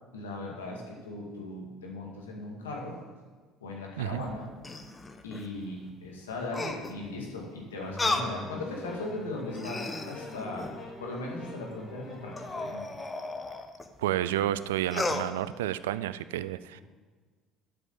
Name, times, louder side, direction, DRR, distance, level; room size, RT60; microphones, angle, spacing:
voice 1, 0.1-3.0 3.6-4.5 5.2-10.7 11.0-13.0 16.7-16.8, left 2 dB, 85° left, -1 dB, 2.1 m, -38 dB
sound 1, 4.2-5.5 6.5-7.1 8.0-8.4 9.0-9.1 9.5-10.9 12.3-13.9 14.9-15.3, left 2 dB, 25° left, 1.1 m, -34 dB
sound 2, 7.8-12.8, left 2 dB, 45° left, 2.7 m, -44 dB
voice 2, 14.0-16.8, right 12 dB, 80° right, 15 dB, 0.4 m, -30 dB
8.3 x 6.9 x 7.2 m, 1.4 s
hypercardioid pair, 65°, 0 cm